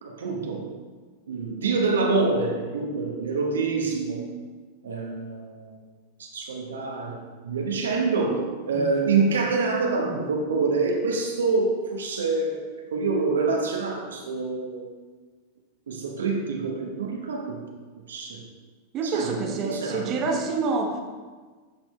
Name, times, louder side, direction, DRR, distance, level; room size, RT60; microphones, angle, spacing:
voice 1, 0.0-0.7 1.3-4.3 4.8-5.8 6.2-15.0 15.9-17.7 18.1-18.5 19.0-20.4, right 4 dB, 75° right, 1 dB, 0.9 m, -26 dB
voice 2, 18.9-21.0, right 4 dB, 35° right, 2 dB, 0.9 m, -28 dB
12.0 x 4.2 x 2.2 m, 1.4 s
figure-of-eight pair, 95°, 0 cm